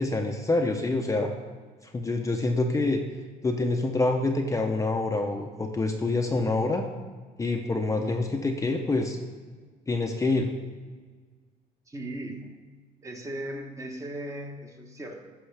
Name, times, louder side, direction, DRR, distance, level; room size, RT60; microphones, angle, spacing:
voice 1, 0.0-1.3 1.8-3.0 3.4-6.9 7.4-9.2 9.9-10.5, left 2 dB, 20° left, 3 dB, 0.7 m, -26 dB
voice 2, 11.9-12.6 13.0-15.3, right 1 dB, 20° right, 3 dB, 1.0 m, -37 dB
13.5 x 5.4 x 3.4 m, 1.5 s
cardioid pair, 110°, 17 cm